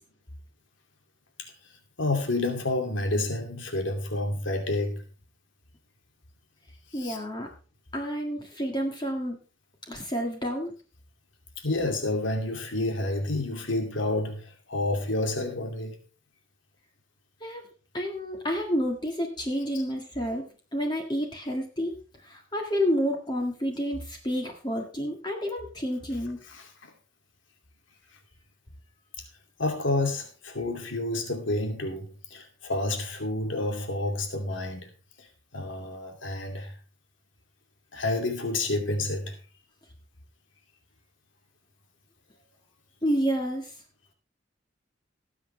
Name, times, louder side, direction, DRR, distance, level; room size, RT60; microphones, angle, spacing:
voice 1, 2.0-5.0 6.9-7.2 11.6-16.0 26.5-26.7 29.6-34.9 35.2-35.3 35.5-36.7 37.9-39.4, left 2 dB, 75° left, 2.6 m, -29 dB
voice 2, 6.9-7.5 7.9-9.4 9.9-10.7 17.4-17.6 17.9-20.5 20.7-22.0 22.2-26.4 43.0-43.7, equal, 20° left, 1.8 m, -29 dB
19.0 x 7.9 x 3.3 m
head